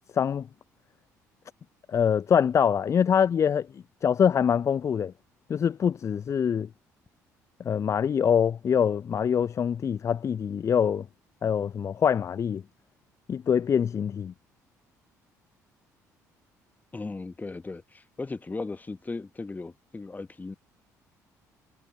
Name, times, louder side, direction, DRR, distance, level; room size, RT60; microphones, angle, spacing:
voice 1, 0.1-0.5 1.9-5.1 5.5-6.7 7.6-11.1 11.4-12.6 13.3-14.3, left 7 dB, 35° left, 0.4 m, -24 dB
voice 2, 16.9-20.6, left 3 dB, 20° left, 1.1 m, -37 dB
figure-of-eight pair, 50°, 9 cm